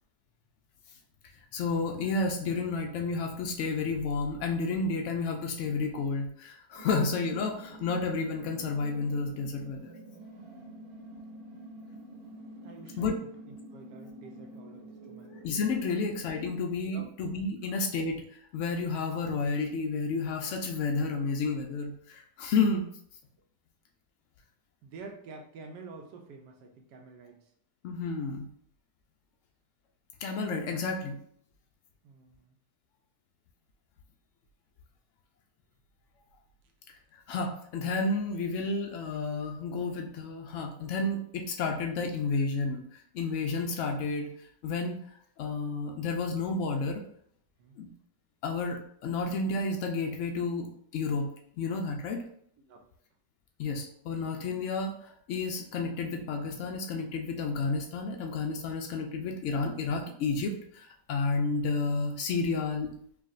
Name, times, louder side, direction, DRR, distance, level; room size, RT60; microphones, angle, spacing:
voice 1, 1.5-9.9 13.0-13.2 15.4-22.9 27.8-28.5 30.2-31.2 37.3-42.8 43.1-44.3 44.6-45.0 45.4-47.0 47.8-47.9 48.4-51.3 51.6-52.2 53.6-62.9, left 4 dB, 80° left, 2 dB, 0.6 m, -31 dB
sound 1, 6.7-16.5, right 1 dB, 65° right, 1.2 m, -48 dB
voice 2, 12.6-15.3 15.9-16.0 16.9-17.1 24.8-27.4 32.0-32.6 47.6-47.8 52.7-52.9, right 4 dB, 85° right, 2 dB, 1.3 m, -49 dB
4.7 x 2.5 x 2.5 m, 0.64 s
omnidirectional pair, 1.8 m